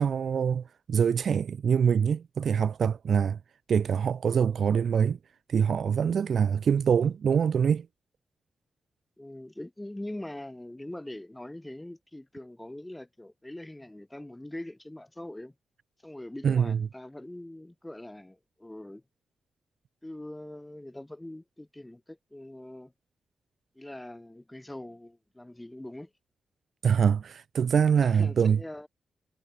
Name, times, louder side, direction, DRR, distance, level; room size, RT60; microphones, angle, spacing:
voice 1, 0.0-3.4 3.7-5.2 5.5-7.9 16.4-16.8 26.8-28.6, right 7 dB, 65° right, 0.4 m, -24 dB
voice 2, 9.2-15.5 16.0-19.0 20.0-22.9 23.8-26.1 28.0-28.9, left 1 dB, 10° left, 6.8 m, -42 dB
cardioid pair, 80°, 0 cm